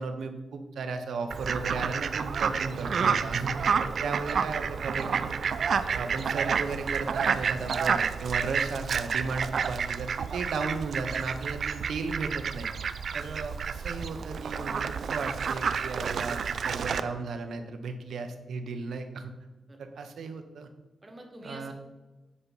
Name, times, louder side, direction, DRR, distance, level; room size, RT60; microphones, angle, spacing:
voice 1, 0.0-3.5 3.8-5.3 5.9-12.7 13.1-19.3 19.8-20.7 21.4-21.7, right 4 dB, 75° right, 7 dB, 0.9 m, -35 dB
Fowl, 1.3-17.0, right 6 dB, 60° right, 0.4 m, -30 dB
voice 2, 3.9-4.2 13.1-13.5 19.7-19.8 21.0-21.7, right 1 dB, 20° right, 3 dB, 1.3 m, -47 dB
8.7 x 5.6 x 5.4 m, 1.2 s
wide cardioid pair, 140°, 0 cm